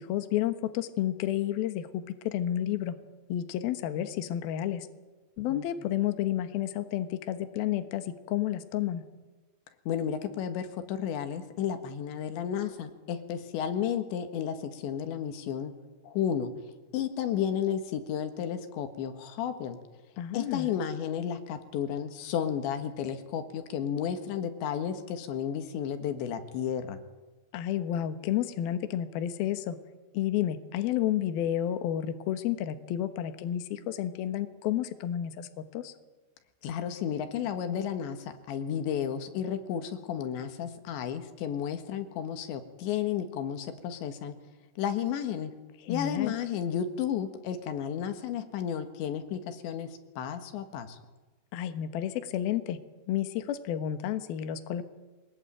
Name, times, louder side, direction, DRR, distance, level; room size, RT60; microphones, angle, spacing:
voice 1, 0.0-3.0 3.3-4.9 5.4-9.0 20.2-20.7 27.5-29.8 30.1-35.9 45.8-46.3 51.5-52.8 53.1-54.8, left 11 dB, 70° left, 10 dB, 2.8 m, -31 dB
voice 2, 9.9-15.7 16.0-16.5 16.9-19.8 20.3-27.0 36.6-44.4 44.8-45.5 45.9-51.0, left 8 dB, 90° left, 9 dB, 3.9 m, -32 dB
22.0 x 20.5 x 9.0 m, 1.3 s
omnidirectional pair, 5.1 m